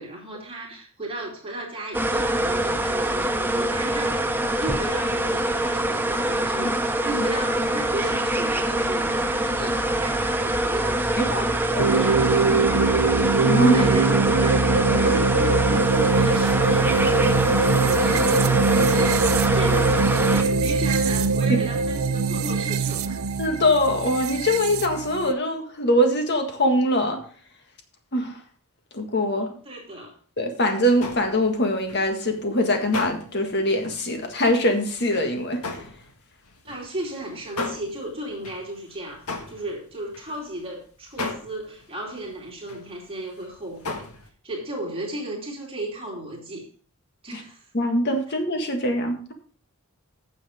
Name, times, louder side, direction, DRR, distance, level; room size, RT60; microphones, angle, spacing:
voice 1, 0.0-12.3 13.6-14.6 15.0-23.3 29.3-30.1 36.6-44.1 44.4-46.7 47.2-47.6, right 1 dB, 25° right, -2 dB, 2.9 m, -35 dB
sound 1, 1.9-20.4, right 1 dB, 10° right, 0.6 m, -24 dB
voice 2, 11.2-11.9 13.4-13.9 14.9-15.1 23.4-27.2 28.1-28.4 28.9-29.5 30.4-35.8 47.3-47.4 47.7-49.3, left 1 dB, 50° left, 5 dB, 1.8 m, -23 dB
sound 2, 11.8-25.3, right 4 dB, 65° right, 0.6 m, -22 dB
sound 3, 30.9-40.7 41.1-43.1 43.4-44.3, left 3 dB, 80° left, 1.6 m, -36 dB
9.1 x 7.1 x 5.1 m, 0.43 s
head